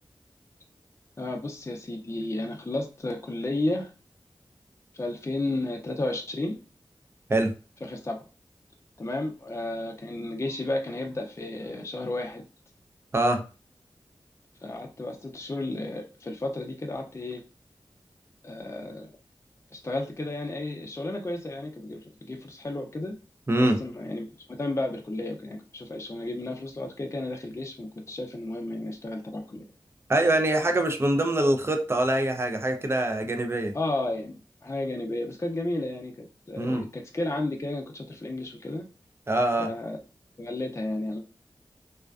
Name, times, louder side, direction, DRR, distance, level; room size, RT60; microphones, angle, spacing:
voice 1, 1.2-3.9 4.9-6.6 7.8-8.2 9.0-12.4 14.6-17.4 18.4-19.1 19.7-23.1 23.6-29.6 33.7-38.8 39.6-40.0 40.4-41.2, left 2 dB, 30° left, 2 dB, 0.5 m, -32 dB
voice 2, 13.1-13.4 23.5-23.8 30.1-33.7 36.6-36.8 39.3-39.7, right 1 dB, 25° right, 6 dB, 0.4 m, -24 dB
2.4 x 2.2 x 2.3 m, 0.33 s
cardioid pair, 40°, 9 cm